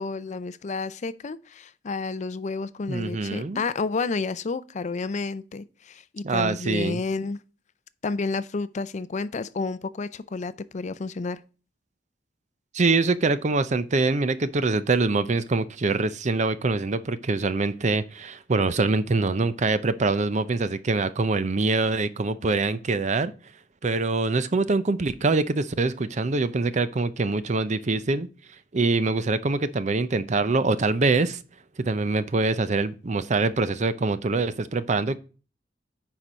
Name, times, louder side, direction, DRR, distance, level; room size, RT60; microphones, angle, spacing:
voice 1, 0.0-7.4 8.0-11.4, left 4 dB, 40° left, 0.5 m, -30 dB
voice 2, 2.9-3.6 6.2-7.0 12.7-23.3 23.8-28.3 28.7-31.4 31.8-35.2, right 3 dB, 40° right, 0.6 m, -24 dB
9.8 x 4.6 x 5.1 m
head